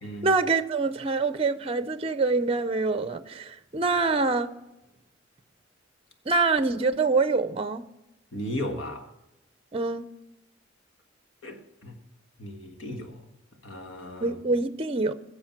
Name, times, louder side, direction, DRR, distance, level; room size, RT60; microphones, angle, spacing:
voice 1, 0.2-4.5 6.3-7.8 9.7-10.1 14.2-15.1, right 3 dB, 30° right, 0.6 m, -25 dB
voice 2, 8.3-9.1 11.4-12.0 12.4-13.2 13.6-14.4, left 1 dB, 80° left, 1.6 m, -36 dB
16.5 x 6.8 x 5.9 m
head